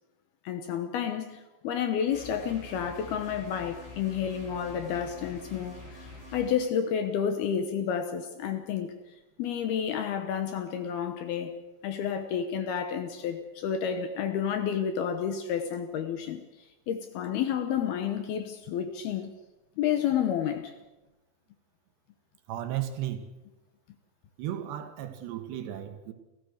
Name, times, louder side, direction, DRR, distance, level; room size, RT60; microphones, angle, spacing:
voice 1, 0.4-8.9 9.4-11.5 11.8-19.3 19.8-20.7, left 8 dB, 70° left, 2.6 m, -30 dB
sound 1, 2.1-6.5, left 2 dB, 50° left, 9.8 m, -46 dB
voice 2, 22.5-23.2 24.4-26.1, right 12 dB, 70° right, 3.5 m, -34 dB
28.0 x 15.5 x 6.6 m
omnidirectional pair, 5.4 m